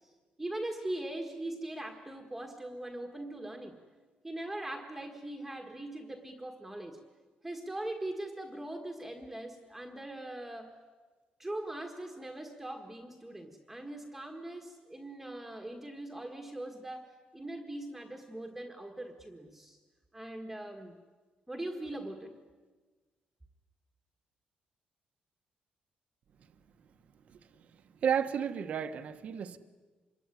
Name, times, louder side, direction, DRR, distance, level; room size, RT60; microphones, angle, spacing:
voice 1, 0.4-3.8 4.2-7.0 7.4-10.8 11.4-19.8 20.1-21.0 21.5-22.4, right 1 dB, 5° right, 4 dB, 1.6 m, -41 dB
voice 2, 28.0-29.6, right 8 dB, 50° right, 9 dB, 1.2 m, -32 dB
26.5 x 22.5 x 9.9 m, 1.3 s
cardioid pair, 175°, 3 cm